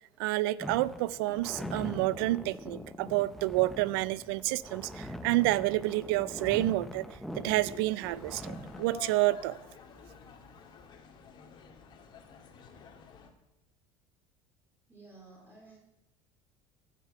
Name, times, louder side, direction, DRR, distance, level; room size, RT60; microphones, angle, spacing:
voice 1, 0.2-7.1 7.4-9.6, right 18 dB, 90° right, 0.5 m, -29 dB
sound 1, 0.6-9.1, left 1 dB, ahead, 0.8 m, -42 dB
sound 2, 8.0-13.3, left 6 dB, 40° left, 2.2 m, -51 dB
voice 2, 14.9-15.8, right 3 dB, 15° right, 3.8 m, -53 dB
14.5 x 6.7 x 7.7 m
cardioid pair, 135°, 12 cm